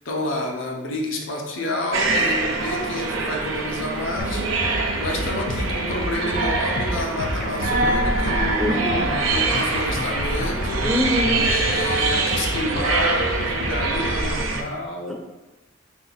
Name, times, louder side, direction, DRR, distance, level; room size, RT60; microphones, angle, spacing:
voice 1, 0.0-8.8 9.3-11.0 11.4-15.1, left 1 dB, 75° left, -1 dB, 0.8 m, -29 dB
sound 1, 1.9-14.6, right 3 dB, 80° right, 0.5 m, -24 dB
sound 2, 4.2-14.5, left 1 dB, 50° left, 0.4 m, -30 dB
voice 2, 8.6-9.1 10.8-11.5 15.1-15.2, left 1 dB, ahead, -2 dB, 0.6 m, -24 dB
3.5 x 2.7 x 4.0 m, 1.1 s
head